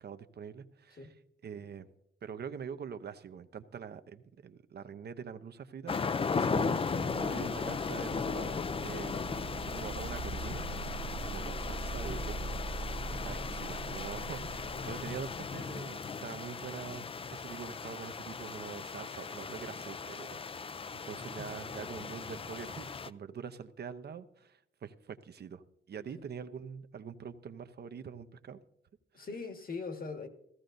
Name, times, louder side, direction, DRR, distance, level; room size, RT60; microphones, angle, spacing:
voice 1, 0.0-1.1 1.4-1.9 2.2-9.2 9.5-10.9 11.2-25.6 25.9-28.6 29.1-29.3, right 7 dB, 55° right, 0.7 m, -44 dB
sound 1, 5.9-23.1, left 5 dB, 25° left, 0.4 m, -37 dB
sound 2, 7.1-15.7, right 3 dB, 90° right, 1.5 m, -42 dB
voice 2, 14.3-15.2 21.4-21.5 29.1-30.3, left 4 dB, 45° left, 1.6 m, -42 dB
15.5 x 14.0 x 2.6 m
cardioid pair, 75°, 20 cm